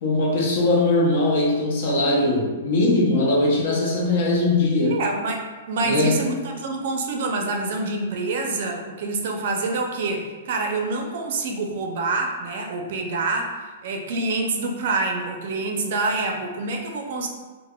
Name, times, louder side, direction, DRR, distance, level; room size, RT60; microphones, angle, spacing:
voice 1, 0.0-5.0 5.8-6.3, left 2 dB, 55° left, -3 dB, 0.7 m, -20 dB
voice 2, 4.9-17.3, right 3 dB, 60° right, 2 dB, 0.4 m, -26 dB
3.4 x 2.0 x 2.2 m, 1.3 s
hypercardioid pair, 150°, 0 cm